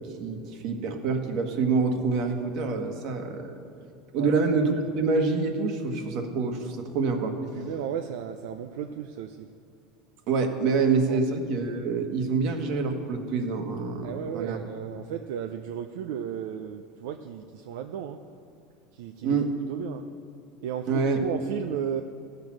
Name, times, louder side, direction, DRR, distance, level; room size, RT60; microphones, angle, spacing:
voice 1, 0.0-3.5 4.1-7.4 10.3-14.6 19.2-19.5 20.9-21.2, right 4 dB, 55° right, 4 dB, 1.5 m, -26 dB
voice 2, 7.5-9.5 11.1-11.2 14.0-18.2 18.9-19.4 19.7-20.1 20.6-22.0, right 9 dB, 80° right, 7 dB, 0.5 m, -34 dB
15.0 x 6.7 x 6.0 m, 2.5 s
supercardioid pair, 130°, 0 cm